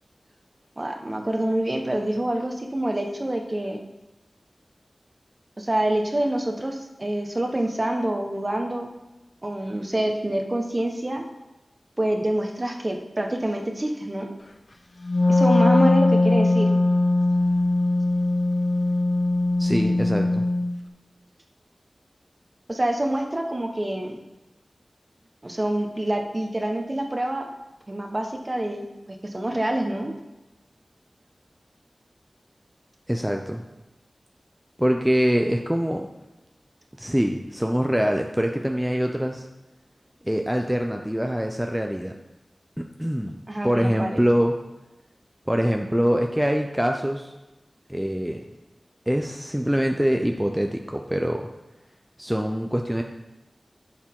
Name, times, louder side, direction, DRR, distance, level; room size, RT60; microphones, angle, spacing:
voice 1, 0.8-3.8 5.6-8.9 9.4-11.2 12.0-14.3 15.3-16.7 22.7-24.2 25.4-27.5 27.9-30.1 43.5-44.2, right 1 dB, 35° right, 3 dB, 1.3 m, -26 dB
Wind instrument woodwind instrument, 15.0-20.7, left 2 dB, 50° left, 0.9 m, -20 dB
voice 2, 19.6-20.5 33.1-33.6 34.8-36.1 36.9-39.5 40.2-42.1 42.8-43.4 43.6-44.6 45.5-47.3 47.9-48.4 49.1-51.5 52.2-53.0, equal, 5° right, 3 dB, 0.7 m, -24 dB
10.5 x 7.2 x 3.8 m, 1.0 s
wide cardioid pair, 50°, 0 cm